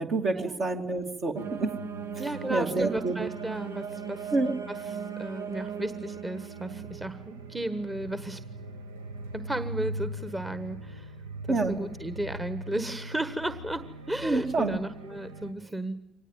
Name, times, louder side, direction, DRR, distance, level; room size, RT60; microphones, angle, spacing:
voice 1, 0.0-1.7 2.5-3.2 4.3-4.5 11.5-11.8 14.2-14.8, right 3 dB, 55° right, 3 dB, 2.8 m, -27 dB
sound 1, 1.4-15.5, right 4 dB, 85° right, 1.0 m, -39 dB
voice 2, 2.2-4.3 4.7-8.4 9.3-11.1 11.5-16.0, right 1 dB, 20° right, 12 dB, 1.4 m, -34 dB
25.0 x 19.5 x 9.0 m, 0.89 s
figure-of-eight pair, 45°, 0 cm